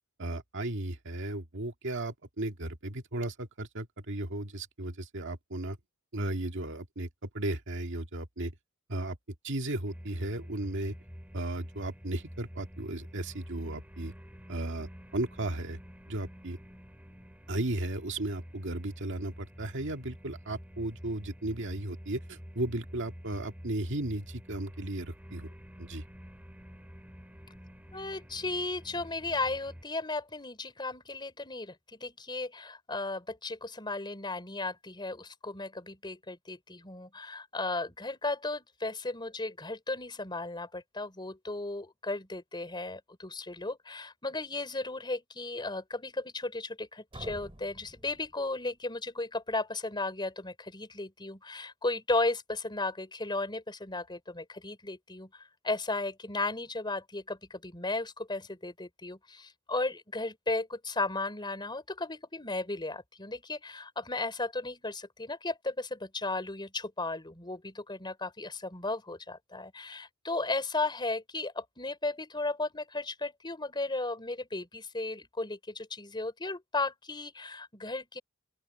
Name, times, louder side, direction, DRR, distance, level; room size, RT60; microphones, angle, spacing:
voice 1, 0.2-5.8 6.1-7.1 7.3-8.5 8.9-9.2 9.4-11.0 11.3-14.1 14.5-15.8 16.1-16.6 17.5-25.5 25.8-26.0, right 1 dB, 60° right, 1.9 m, -35 dB
sound 1, 9.9-29.8, equal, 5° right, 6.0 m, -48 dB
voice 2, 27.9-78.2, left 2 dB, 20° left, 4.0 m, -35 dB
sound 2, 47.1-49.0, right 1 dB, 25° right, 4.1 m, -49 dB
open air
head